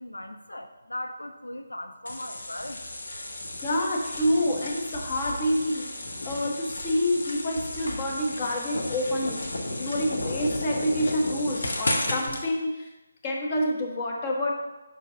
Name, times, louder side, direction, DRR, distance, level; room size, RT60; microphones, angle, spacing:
voice 1, 0.0-2.8, left 1 dB, 80° left, 6 dB, 0.4 m, -38 dB
sound 1, 2.1-12.4, left 1 dB, 60° left, 1.1 m, -33 dB
voice 2, 3.6-12.9 13.2-14.5, left 1 dB, 30° left, 0 dB, 1.1 m, -28 dB
5.7 x 5.2 x 4.8 m, 1.1 s
figure-of-eight pair, 150°, 0 cm